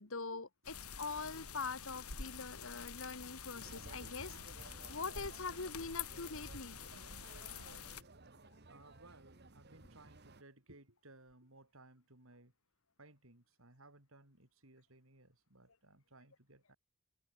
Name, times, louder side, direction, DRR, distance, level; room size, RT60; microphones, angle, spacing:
voice 1, 0.0-6.8 8.4-8.5, left 4 dB, 65° left, 1.5 m, -44 dB
sound 1, 0.6-8.0, left 7 dB, 85° left, 6.4 m, -48 dB
sound 2, 3.5-10.4, right 2 dB, 45° right, 1.6 m, -56 dB
voice 2, 8.7-12.5 13.0-16.8, right 2 dB, 65° right, 4.7 m, -61 dB
head